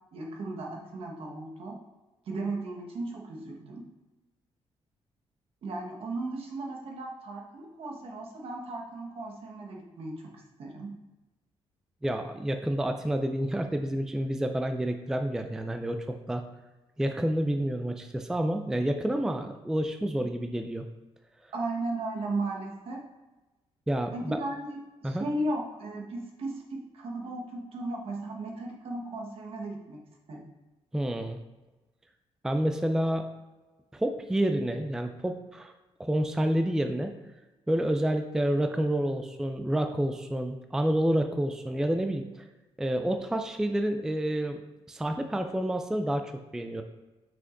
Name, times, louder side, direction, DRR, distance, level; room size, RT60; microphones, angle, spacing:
voice 1, 0.1-1.8 2.2-3.8 5.6-10.9 21.5-23.0 24.1-30.0 30.3-30.4, right 2 dB, 65° right, 0 dB, 1.4 m, -36 dB
voice 2, 12.0-16.4 17.0-20.8 23.9-24.4 25.0-25.3 30.9-31.4 32.4-33.3 33.9-35.7 36.0-37.1 37.7-42.4 42.8-44.6 44.9-46.8, right 1 dB, 5° right, 6 dB, 0.3 m, -29 dB
6.3 x 5.8 x 2.6 m, 1.1 s
cardioid pair, 125°, 10 cm